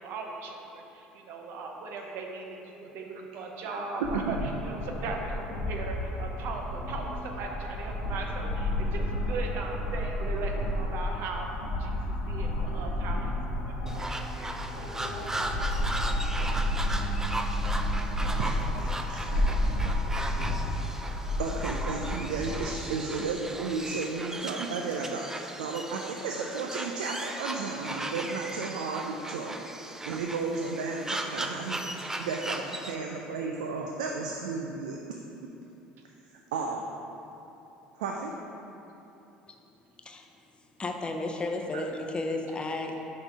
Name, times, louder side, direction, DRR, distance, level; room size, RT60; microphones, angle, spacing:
voice 1, 0.0-4.4 4.6-11.5 11.8-14.1 14.3-15.3 15.6-15.8 19.5-19.9, right 3 dB, 60° right, 2 dB, 0.8 m, -39 dB
sound 1, 4.0-22.6, left 1 dB, 80° left, 1.1 m, -31 dB
voice 2, 4.1-4.5 18.4-18.5 18.8-19.2 21.4-29.6 30.0-35.0 36.5-36.9 38.0-38.3 41.7-41.8, right 4 dB, 80° right, 1 dB, 0.4 m, -33 dB
sound 2, 13.9-33.0, right 1 dB, 10° right, 0.4 m, -37 dB
voice 3, 40.8-43.0, left 2 dB, 25° left, 3 dB, 0.7 m, -33 dB
6.2 x 3.8 x 4.7 m, 3.0 s
hypercardioid pair, 70°, 4 cm